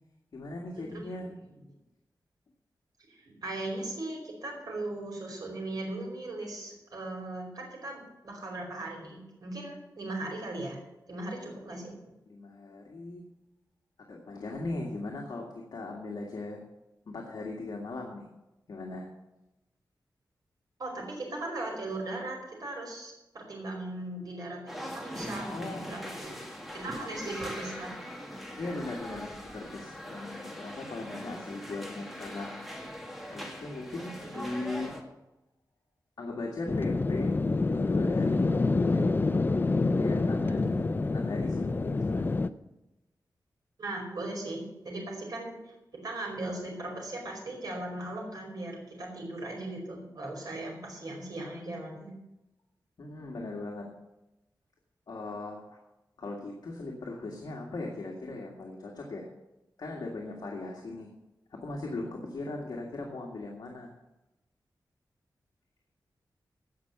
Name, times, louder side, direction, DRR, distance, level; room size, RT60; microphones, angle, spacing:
voice 1, 0.3-1.3 11.8-12.0 12.3-13.2 14.1-16.6 17.1-18.3 18.7-19.1 25.5-25.9 27.0-27.3 28.6-32.5 33.3-34.9 36.2-39.2 40.0-40.8 41.1-42.3 53.0-53.9 55.1-55.8 56.2-59.3 59.8-61.1 61.5-63.9, left 2 dB, 65° left, -1 dB, 2.0 m, -39 dB
voice 2, 0.9-1.2 3.1-10.8 11.1-11.9 20.8-25.5 25.8-26.4 26.7-28.0 34.2-34.5 40.4-40.7 43.8-52.1, right 2 dB, 60° right, -1 dB, 5.0 m, -38 dB
sound 1, 24.7-35.0, equal, ahead, 1.7 m, -41 dB
sound 2, 36.7-42.5, left 3 dB, 30° left, 0.5 m, -27 dB
17.0 x 5.9 x 6.8 m, 0.96 s
wide cardioid pair, 155°, 7 cm